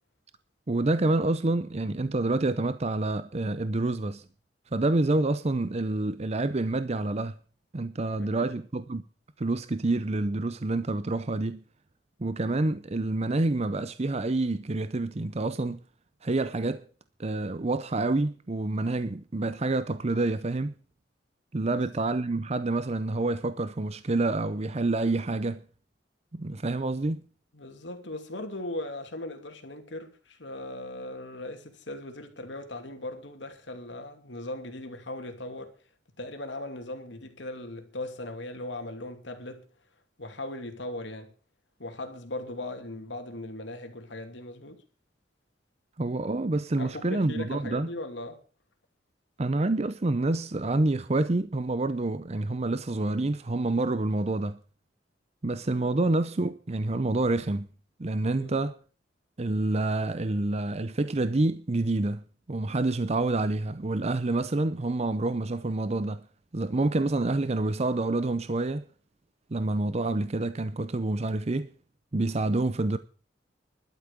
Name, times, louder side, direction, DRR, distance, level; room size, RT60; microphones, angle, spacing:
voice 1, 0.7-4.2 4.7-7.4 7.7-9.0 9.4-11.6 12.2-15.8 16.2-16.8 17.2-20.7 21.5-25.6 26.3-27.2 46.0-47.9 49.4-54.6 55.4-57.7 58.0-58.7 59.4-66.3 66.5-68.8 69.5-71.7 72.1-73.0, right 2 dB, 35° right, 0.6 m, -27 dB
voice 2, 8.2-8.6 21.6-21.8 27.5-35.7 36.2-39.6 40.2-41.3 41.8-44.8 46.8-48.4 58.4-58.6, left 1 dB, 75° left, 2.7 m, -38 dB
12.0 x 8.4 x 8.4 m
head